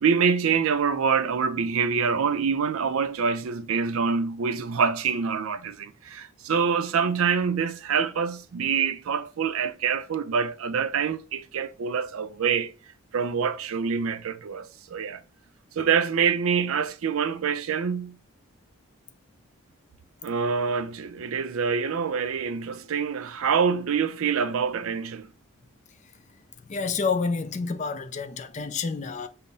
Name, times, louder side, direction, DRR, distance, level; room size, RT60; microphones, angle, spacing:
voice 1, 0.0-12.7 13.1-15.2 15.8-18.2 20.2-25.3, right 6 dB, 75° right, 0.4 m, -26 dB
voice 2, 26.7-29.3, left 4 dB, 35° left, 0.3 m, -28 dB
5.3 x 2.0 x 4.0 m
head